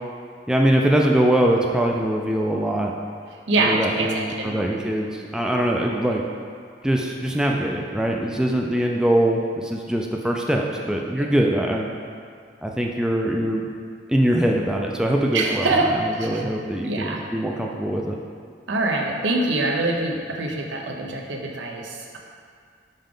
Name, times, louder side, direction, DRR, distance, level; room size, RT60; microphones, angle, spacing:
voice 1, 0.5-2.9 3.6-6.2 6.8-11.9 12.6-13.7 14.1-15.9 16.2-18.2, right 1 dB, 5° right, 0 dB, 0.3 m, -22 dB
voice 2, 3.5-4.6 11.2-11.3 15.3-15.9 16.1-16.3 16.8-17.2 18.7-22.2, right 2 dB, 80° right, 1 dB, 0.7 m, -24 dB
5.4 x 4.8 x 3.8 m, 2.1 s
head